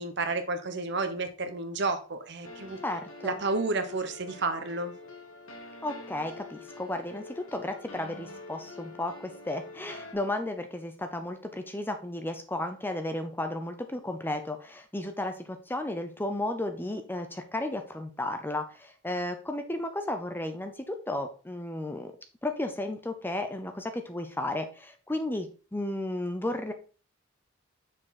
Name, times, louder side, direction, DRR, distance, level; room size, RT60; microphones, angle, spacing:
voice 1, 0.0-2.8 3.2-4.9, right 3 dB, 55° right, 8 dB, 0.9 m, -31 dB
sound 1, 2.4-10.1, left 3 dB, 85° left, 1.5 m, -46 dB
voice 2, 2.8-3.4 5.8-22.1 22.4-26.7, left 1 dB, 10° left, 7 dB, 0.6 m, -34 dB
6.2 x 4.8 x 4.1 m, 0.35 s
head